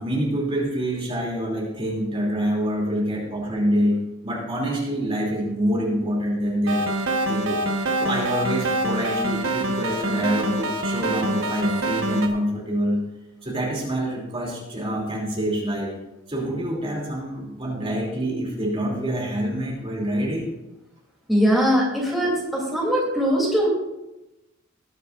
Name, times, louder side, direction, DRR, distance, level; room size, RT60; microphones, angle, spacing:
voice 1, 0.0-6.8 7.3-13.0 13.4-15.9 16.3-20.5, equal, 25° right, -3 dB, 2.9 m, -26 dB
sound 1, 6.7-12.3, right 1 dB, 80° right, 1.3 m, -25 dB
voice 2, 21.3-23.7, equal, ahead, -5 dB, 3.0 m, -21 dB
20.0 x 9.7 x 2.6 m, 0.96 s
head